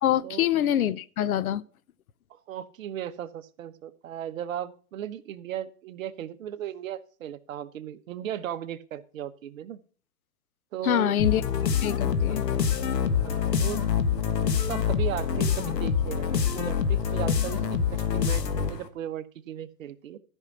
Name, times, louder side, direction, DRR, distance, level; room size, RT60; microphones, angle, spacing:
voice 1, 0.0-1.6 10.8-11.4 11.8-12.4, left 11 dB, 60° left, 0.7 m, -25 dB
voice 2, 2.3-9.8 10.7-11.1 12.3-12.6 13.2-13.8 14.7-18.4 18.7-20.2, right 10 dB, 55° right, 1.0 m, -36 dB
sound 1, 11.2-18.9, left 7 dB, 85° left, 1.6 m, -26 dB
13.5 x 5.6 x 5.9 m
hypercardioid pair, 140°, 48 cm